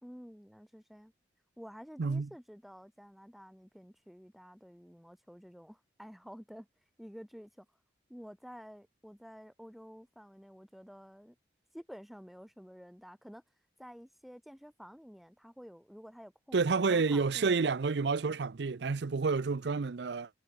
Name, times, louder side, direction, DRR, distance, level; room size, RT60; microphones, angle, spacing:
voice 1, 0.0-1.1 1.6-6.7 7.0-7.7 8.1-11.4 11.7-13.4 13.8-17.5, equal, ahead, 1.0 m, -51 dB
voice 2, 2.0-2.3 16.5-20.3, right 4 dB, 75° right, 0.5 m, -29 dB
head